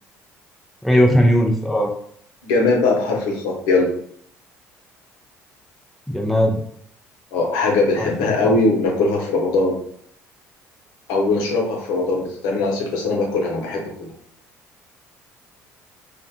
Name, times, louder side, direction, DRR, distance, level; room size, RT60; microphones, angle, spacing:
voice 1, 0.8-1.9 6.1-6.6 8.0-8.1 8.4-8.6, equal, ahead, 1 dB, 0.5 m, -17 dB
voice 2, 2.4-3.9 7.3-9.8 11.1-14.1, left 3 dB, 85° left, 0 dB, 0.7 m, -20 dB
2.4 x 2.2 x 2.8 m, 0.64 s
supercardioid pair, 90°, 6 cm